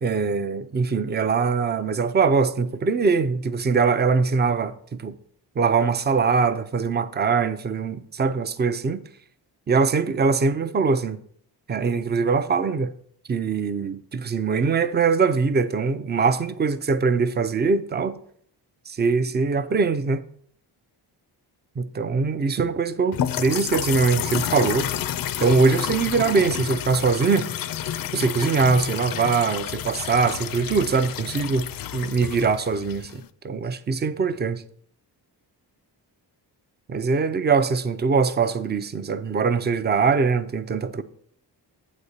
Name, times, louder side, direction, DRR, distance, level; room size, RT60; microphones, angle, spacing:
voice 1, 0.0-5.2 5.6-9.0 9.7-11.2 11.7-12.9 13.3-18.2 18.9-20.2 21.8-24.9 25.4-27.5 28.1-34.6 36.9-41.0, right 5 dB, 25° right, 0.5 m, -22 dB
sound 1, 23.1-33.3, left 10 dB, 55° left, 0.5 m, -30 dB
8.3 x 4.2 x 6.5 m
wide cardioid pair, 125°, 41 cm